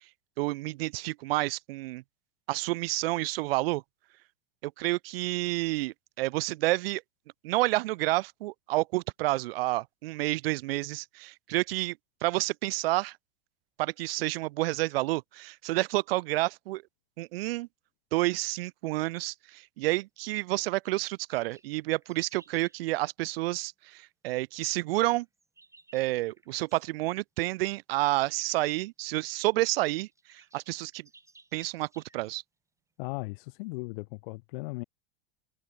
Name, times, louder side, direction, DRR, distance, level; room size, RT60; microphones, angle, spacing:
voice 1, 0.4-2.0 2.5-3.8 4.6-7.0 7.4-12.0 12.2-13.2 13.8-16.8 17.2-17.7 18.1-25.3 25.9-31.1 31.5-32.4, right 19 dB, 75° right, 0.5 m, -29 dB
sound 1, 20.8-22.8 24.9-26.9 28.7-28.8 29.4-29.5 29.6-32.4, right 3 dB, 10° right, 7.4 m, -60 dB
voice 2, 33.0-34.8, left 25 dB, 60° left, 0.8 m, -37 dB
supercardioid pair, 125°, 30 cm